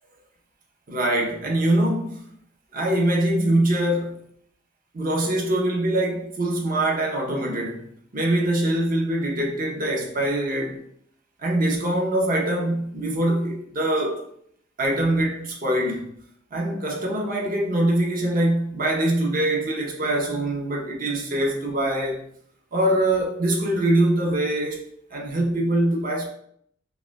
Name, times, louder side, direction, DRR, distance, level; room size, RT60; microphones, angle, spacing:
voice 1, 0.9-2.2 2.7-4.2 4.9-7.8 8.1-10.8 11.4-14.2 14.8-16.1 16.5-22.2 22.7-24.8 25.1-26.3, right 1 dB, 45° right, 0.7 m, -23 dB
5.3 x 2.2 x 2.2 m
head